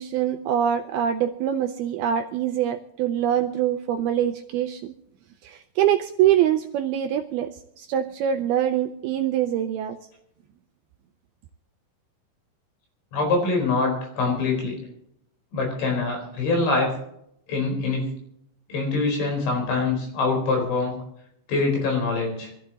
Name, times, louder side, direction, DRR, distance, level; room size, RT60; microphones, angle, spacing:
voice 1, 0.0-4.9 5.4-10.0, right 10 dB, 80° right, 6 dB, 2.3 m, -24 dB
voice 2, 13.1-14.8 15.5-16.9 17.5-18.1 18.7-21.0 21.5-22.5, left 3 dB, 90° left, 2 dB, 6.7 m, -24 dB
24.5 x 14.5 x 2.9 m, 0.74 s
omnidirectional pair, 5.1 m